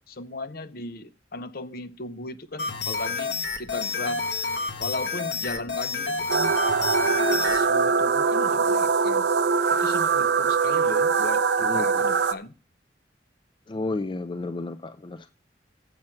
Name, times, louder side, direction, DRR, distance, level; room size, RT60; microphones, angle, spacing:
voice 1, 0.1-4.2 4.8-6.5 7.3-9.3 9.7-11.5 11.7-12.5, left 2 dB, 55° left, 0.7 m, -36 dB
sound 1, 2.6-7.6, left 4 dB, 70° left, 1.4 m, -29 dB
sound 2, 6.3-12.3, right 5 dB, 65° right, 0.5 m, -22 dB
voice 2, 13.7-15.3, left 2 dB, 25° left, 0.4 m, -32 dB
7.5 x 5.8 x 7.6 m
head